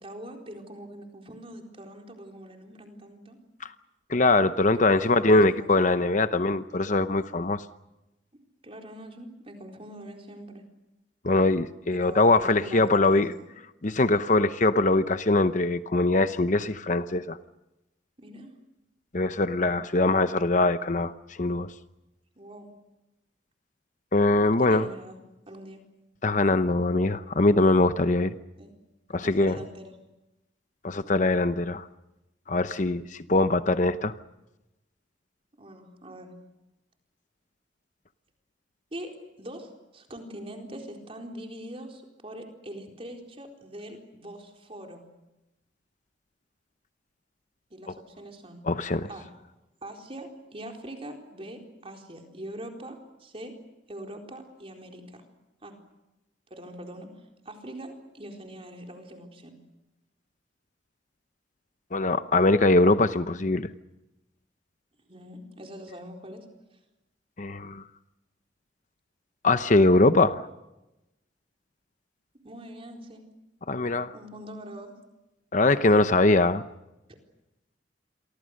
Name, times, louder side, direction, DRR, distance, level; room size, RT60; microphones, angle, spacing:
voice 1, 0.0-3.4 4.9-6.0 8.6-10.6 11.9-13.4 18.2-18.5 22.4-22.7 24.4-25.2 25.5-25.8 28.6-28.7 29.2-29.9 35.6-36.3 38.9-45.0 47.7-48.6 49.1-49.3 49.8-53.5 53.9-55.2 55.6-55.7 56.5-57.1 57.4-59.6 65.1-66.4 72.4-73.2 74.1-74.9, right 1 dB, 30° right, 2 dB, 4.2 m, -43 dB
voice 2, 4.1-7.6 11.2-13.3 13.8-17.4 19.1-21.1 21.4-21.7 24.1-24.9 26.2-28.3 29.1-29.6 30.8-31.9 32.5-34.1 48.6-49.1 61.9-63.7 67.4-67.8 69.4-70.4 73.7-74.1 75.5-76.6, left 2 dB, 40° left, 11 dB, 0.8 m, -22 dB
29.0 x 24.0 x 6.6 m, 0.97 s
head